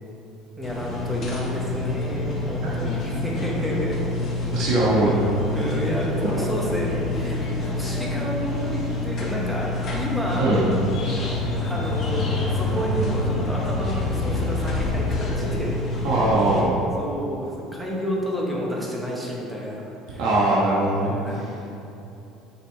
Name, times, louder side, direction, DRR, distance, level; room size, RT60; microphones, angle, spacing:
sound 1, 0.6-16.6, left 2 dB, 35° left, 0.9 m, -27 dB
voice 1, 0.6-4.0 4.6-4.8 5.5-10.5 11.6-15.8 17.0-20.3 20.9-21.5, equal, 5° right, -4 dB, 0.9 m, -30 dB
voice 2, 4.5-5.2 10.4-10.7 16.0-16.7 20.2-21.4, right 1 dB, 65° right, -8 dB, 1.1 m, -21 dB
6.8 x 5.2 x 3.2 m, 2.8 s
cardioid pair, 170°, 0 cm